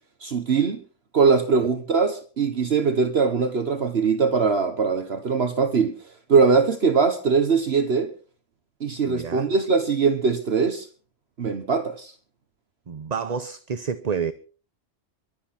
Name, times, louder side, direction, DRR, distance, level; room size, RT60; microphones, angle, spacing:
voice 1, 0.2-0.8 1.1-5.9 6.3-8.1 8.8-10.9 11.4-12.1, right 5 dB, 60° right, 1.5 m, -21 dB
voice 2, 9.0-9.5 12.9-14.3, right 6 dB, 40° right, 0.9 m, -29 dB
23.5 x 8.6 x 5.9 m
omnidirectional pair, 1.3 m